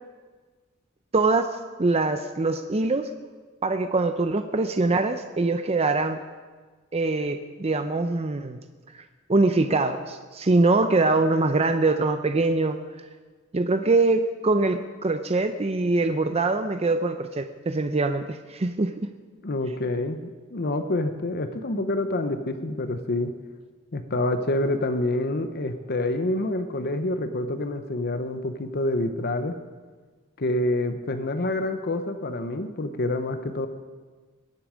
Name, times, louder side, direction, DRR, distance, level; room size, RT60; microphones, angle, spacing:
voice 1, 1.1-3.1 3.6-6.2 6.9-8.6 8.9-9.0 9.3-12.8 13.5-19.1, right 3 dB, 30° right, 8 dB, 0.6 m, -23 dB
voice 2, 19.4-23.3 23.9-29.5 30.4-33.7, left 2 dB, 50° left, 8 dB, 0.9 m, -27 dB
21.5 x 10.5 x 5.1 m, 1.4 s
head